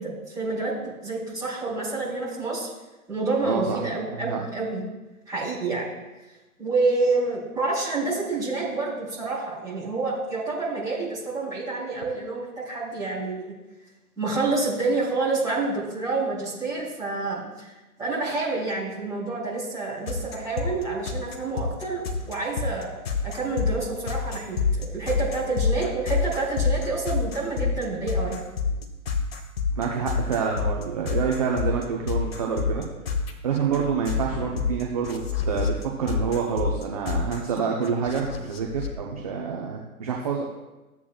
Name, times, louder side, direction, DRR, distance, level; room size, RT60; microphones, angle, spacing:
voice 1, 0.0-2.7 3.1-4.8 5.3-5.8 6.6-13.5 14.2-17.7 18.0-28.4, right 3 dB, 5° right, -8 dB, 3.5 m, -28 dB
voice 2, 3.4-3.8 4.1-4.4 29.8-32.8 33.4-35.7 36.0-40.4, right 6 dB, 25° right, 0 dB, 0.7 m, -27 dB
sound 1, 20.1-38.9, left 5 dB, 40° left, 1.2 m, -27 dB
13.5 x 8.3 x 2.4 m, 1.1 s
figure-of-eight pair, 135°, 45 cm